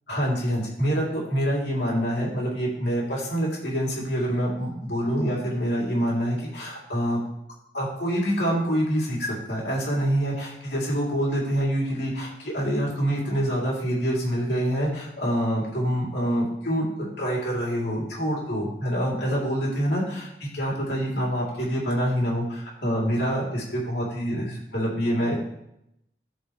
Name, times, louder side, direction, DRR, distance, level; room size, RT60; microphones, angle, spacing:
voice 1, 0.1-7.2 7.7-25.4, equal, 70° left, -5 dB, 3.0 m, -26 dB
14.5 x 5.3 x 3.2 m, 0.81 s
head